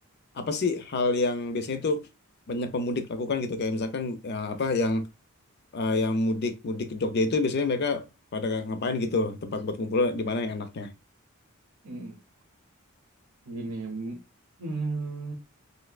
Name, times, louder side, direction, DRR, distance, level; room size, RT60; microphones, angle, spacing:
voice 1, 0.4-2.0 2.5-5.1 5.7-8.0 8.3-10.9, left 3 dB, 50° left, 0.5 m, -27 dB
voice 2, 11.8-12.2 13.5-14.2 14.6-15.3, right 3 dB, 90° right, 0.7 m, -34 dB
3.2 x 2.7 x 2.3 m
head